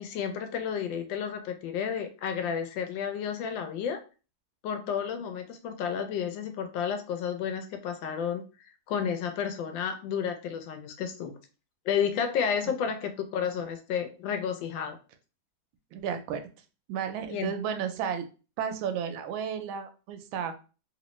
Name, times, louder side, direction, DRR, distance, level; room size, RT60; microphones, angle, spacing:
voice 1, 0.0-4.0 4.6-11.3 11.8-15.0 17.3-17.5, left 7 dB, 75° left, 7 dB, 1.3 m, -31 dB
voice 2, 15.9-16.5 16.9-18.3 18.6-20.6, right 7 dB, 85° right, 8 dB, 1.4 m, -33 dB
3.1 x 3.0 x 3.0 m, 0.34 s
omnidirectional pair, 2.1 m